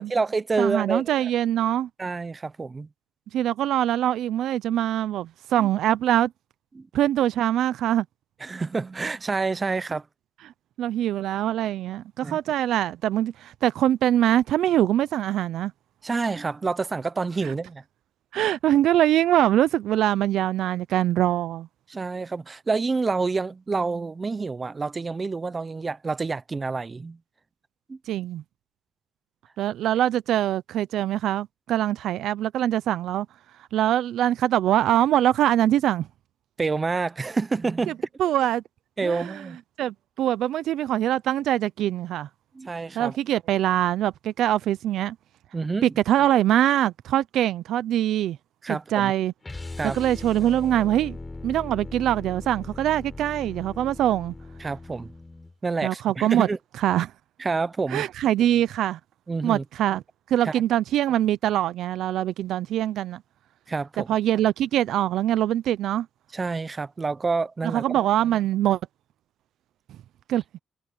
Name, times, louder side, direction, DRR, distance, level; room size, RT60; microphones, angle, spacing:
voice 1, 0.0-1.3 2.0-2.9 6.7-6.9 8.4-10.0 12.2-12.4 16.0-17.8 21.9-27.2 27.9-28.0 36.6-38.0 39.0-39.6 42.5-43.2 45.5-45.9 48.6-49.1 49.8-50.0 54.6-55.1 55.6-56.6 57.4-58.0 59.3-59.6 60.4-60.5 63.7-64.1 66.3-67.8, right 4 dB, 30° right, 0.9 m, -28 dB
voice 2, 0.6-1.9 3.3-6.3 6.9-8.1 10.8-15.7 17.4-17.5 18.3-21.7 28.1-28.4 29.6-33.3 33.7-36.1 37.9-38.0 38.2-38.6 39.0-39.4 39.8-42.3 42.9-45.2 45.8-48.4 48.7-49.3 49.8-51.2 51.4-54.3 55.8-56.5 56.8-57.1 57.9-59.0 59.4-60.0 60.3-63.2 64.1-66.1 67.6-68.8 70.3-70.4, right 12 dB, 80° right, 0.6 m, -23 dB
sound 1, 49.4-55.5, left 2 dB, 20° left, 8.0 m, -39 dB
cardioid pair, 90°, 0 cm